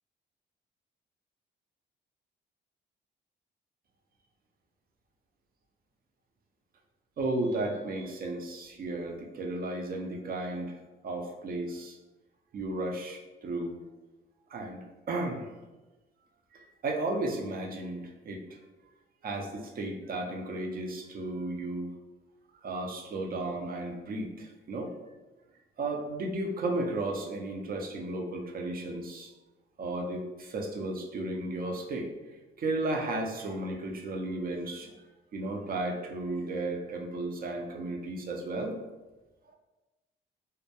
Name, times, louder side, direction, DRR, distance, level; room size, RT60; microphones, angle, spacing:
voice 1, 7.2-10.8 11.0-12.0 12.5-13.8 14.5-15.5 16.5-18.6 19.2-21.9 22.6-25.0 25.8-29.3 29.8-32.1 32.6-35.0 35.3-38.8, right 2 dB, 45° right, 1 dB, 0.5 m, -34 dB
2.2 x 2.1 x 2.8 m, 1.1 s
cardioid pair, 90°, 20 cm